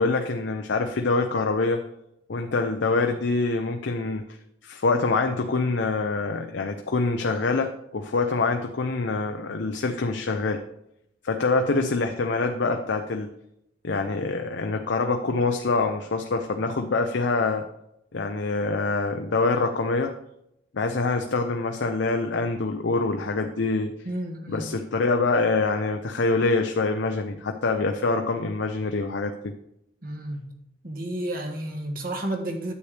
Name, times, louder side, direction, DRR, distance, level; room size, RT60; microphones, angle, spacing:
voice 1, 0.0-1.8 2.3-4.2 4.6-10.6 11.2-13.3 13.8-17.6 18.1-20.1 20.7-23.9 24.5-29.5, left 3 dB, 75° left, 4 dB, 0.6 m, -25 dB
voice 2, 24.0-24.7 30.0-30.5 30.8-32.7, right 1 dB, 50° right, 4 dB, 1.4 m, -31 dB
9.8 x 7.9 x 3.4 m, 0.79 s
head